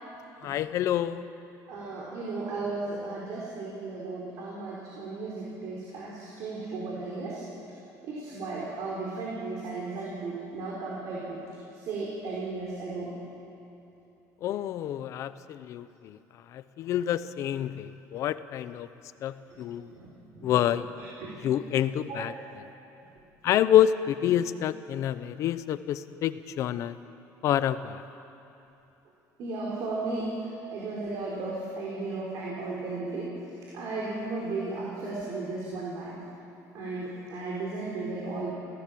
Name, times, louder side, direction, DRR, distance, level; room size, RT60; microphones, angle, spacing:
voice 1, 0.4-1.3 14.4-16.2 16.5-18.9 19.2-19.9 20.4-20.9 21.4-22.3 23.4-27.0 27.4-28.0, left 11 dB, 45° left, 13 dB, 0.8 m, -27 dB
voice 2, 1.7-7.4 8.0-11.4 11.7-13.1 19.5-19.6 19.9-20.6 21.0-21.4 22.1-22.3 29.4-33.3 33.7-36.2 36.7-38.5, right 3 dB, 50° right, -4 dB, 4.4 m, -35 dB
28.5 x 17.0 x 7.7 m, 2.9 s
cardioid pair, 175°, 7 cm